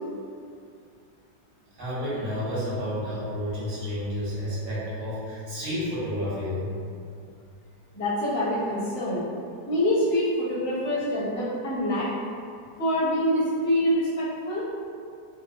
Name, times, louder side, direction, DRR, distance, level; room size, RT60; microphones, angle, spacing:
voice 1, 1.8-6.7, equal, 80° right, -10 dB, 1.9 m, -30 dB
voice 2, 7.9-9.2 9.7-12.1 12.8-14.6, equal, 10° left, -15 dB, 0.6 m, -25 dB
4.1 x 2.2 x 2.4 m, 2.4 s
omnidirectional pair, 2.1 m